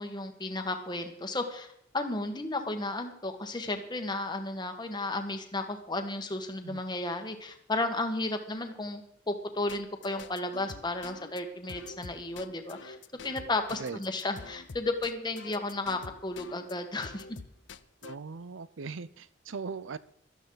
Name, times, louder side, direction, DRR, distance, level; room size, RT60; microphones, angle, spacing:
voice 1, 0.0-1.7 1.9-9.0 9.3-13.0 13.2-17.2, left 2 dB, 20° left, 6 dB, 1.5 m, -33 dB
sound 1, 9.7-16.7 17.0-18.2, left 4 dB, 70° left, 0.7 m, -46 dB
voice 2, 18.0-20.0, right 4 dB, 85° right, 17 dB, 0.6 m, -39 dB
17.5 x 13.0 x 4.0 m, 0.70 s
head